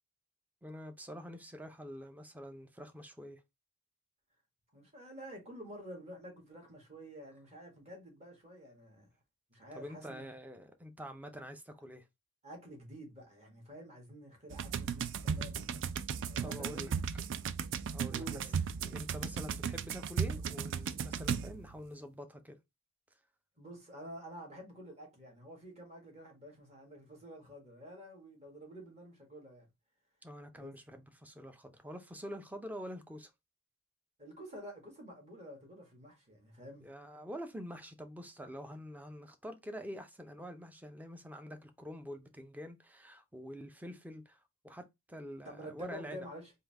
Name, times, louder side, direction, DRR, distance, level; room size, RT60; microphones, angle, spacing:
voice 1, 0.6-3.4 9.7-12.1 16.4-16.9 17.9-18.4 18.8-22.6 30.2-33.3 36.8-46.2, equal, 5° right, 0.6 m, -46 dB
voice 2, 4.7-9.2 9.5-10.3 12.4-15.8 16.3-17.0 18.1-18.6 23.6-29.7 30.5-30.7 34.2-36.9 45.4-46.5, equal, 30° right, 1.7 m, -49 dB
sound 1, 14.5-21.8, right 7 dB, 55° right, 0.4 m, -36 dB
3.7 x 2.7 x 3.4 m
head